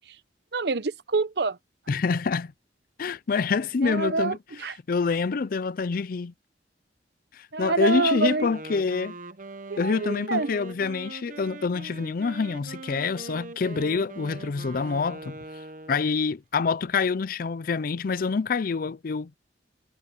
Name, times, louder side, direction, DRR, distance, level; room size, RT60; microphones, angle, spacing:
voice 1, 0.5-1.6 3.8-4.8 7.5-8.5 9.7-10.5, right 3 dB, 65° right, 0.8 m, -26 dB
voice 2, 1.9-2.5 3.0-4.4 4.9-6.3 7.3-9.1 9.8-15.4 15.9-19.3, left 4 dB, 50° left, 0.4 m, -26 dB
Wind instrument woodwind instrument, 8.3-16.2, right 2 dB, 50° right, 1.1 m, -41 dB
head